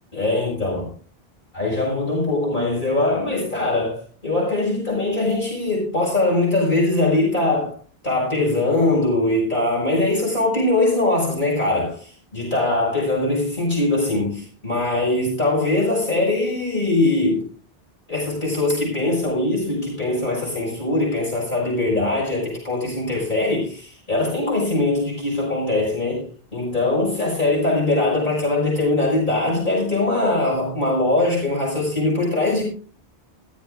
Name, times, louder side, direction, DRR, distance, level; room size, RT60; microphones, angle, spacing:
voice 1, 0.1-0.9 1.5-7.8 8.0-17.4 18.1-32.6, left 2 dB, 50° left, -5 dB, 6.1 m, -21 dB
15.0 x 14.0 x 2.5 m, 0.41 s
omnidirectional pair, 1.1 m